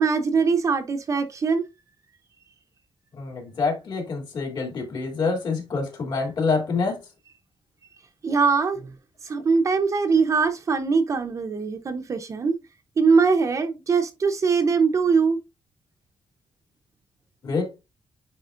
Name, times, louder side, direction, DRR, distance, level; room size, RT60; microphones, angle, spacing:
voice 1, 0.0-1.6 8.2-8.9 9.2-12.6 13.0-15.4, right 5 dB, 35° right, 0.9 m, -22 dB
voice 2, 3.1-7.0 17.4-17.7, left 4 dB, 55° left, 3.0 m, -26 dB
9.6 x 4.2 x 2.6 m
wide cardioid pair, 175°, 9 cm